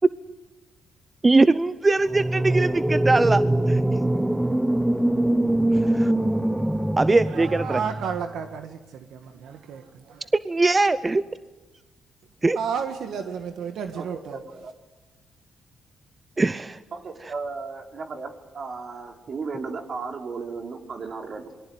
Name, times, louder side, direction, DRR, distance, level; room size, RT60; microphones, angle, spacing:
voice 1, 1.2-3.8 5.7-6.1 7.0-7.8 10.4-11.2 12.4-12.6 16.4-16.8, right 3 dB, 25° right, 0.8 m, -21 dB
sound 1, 2.1-8.2, right 1 dB, 10° right, 1.2 m, -23 dB
voice 2, 7.3-8.8 9.1-10.3 12.5-14.4, right 7 dB, 75° right, 1.6 m, -32 dB
voice 3, 14.0-14.7 16.9-21.5, right 4 dB, 55° right, 4.1 m, -35 dB
27.0 x 22.5 x 9.5 m
supercardioid pair, 60°, 0 cm